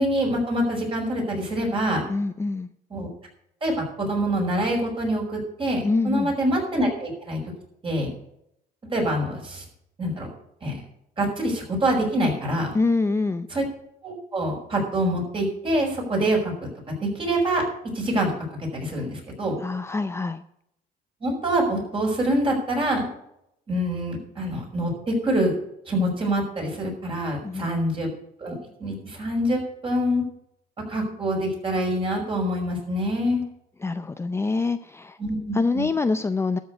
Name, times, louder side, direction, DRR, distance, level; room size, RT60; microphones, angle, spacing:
voice 1, 0.0-2.0 2.9-3.1 3.6-7.4 7.8-8.1 8.9-9.6 10.0-10.3 10.6-10.8 11.2-12.7 13.5-13.6 14.0-17.7 17.9-19.5 21.2-23.1 23.7-25.5 25.9-28.1 28.4-30.2 30.9-33.4 35.2-35.9, right 1 dB, 30° right, 0 dB, 5.3 m, -25 dB
voice 2, 2.1-2.7 5.8-6.3 12.7-13.5 19.6-20.4 27.4-27.8 33.8-35.2 35.5-36.6, left 3 dB, 15° left, 10 dB, 0.5 m, -25 dB
12.5 x 6.5 x 8.0 m, 0.76 s
cardioid pair, 110°, 17 cm